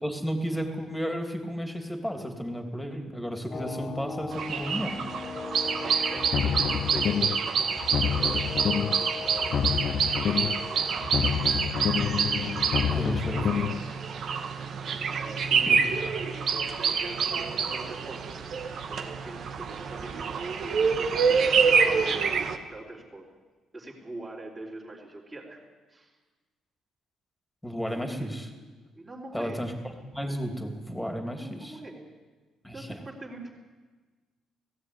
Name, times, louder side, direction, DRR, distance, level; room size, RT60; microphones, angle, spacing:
voice 1, 0.0-5.0 12.9-13.6 15.7-15.8 27.6-28.5 29.3-31.8 32.6-33.0, equal, 5° left, 4 dB, 2.9 m, -33 dB
sound 1, 3.5-11.6, left 4 dB, 35° left, 1.2 m, -40 dB
sound 2, 4.3-22.6, right 6 dB, 55° right, 1.7 m, -27 dB
voice 2, 6.0-8.5 8.8-11.3 12.9-13.5 15.1-18.4 18.9-22.3 22.7-23.3 23.7-25.6 25.9-26.2 27.9-28.3 28.9-29.6 31.3-32.1 32.7-33.5, right 2 dB, 20° right, -6 dB, 3.8 m, -43 dB
sound 3, 6.2-7.5 7.8-9.1 9.4-10.7 11.0-13.8, left 8 dB, 50° left, 0.8 m, -28 dB
17.5 x 16.0 x 9.7 m, 1.3 s
cardioid pair, 125°, 0 cm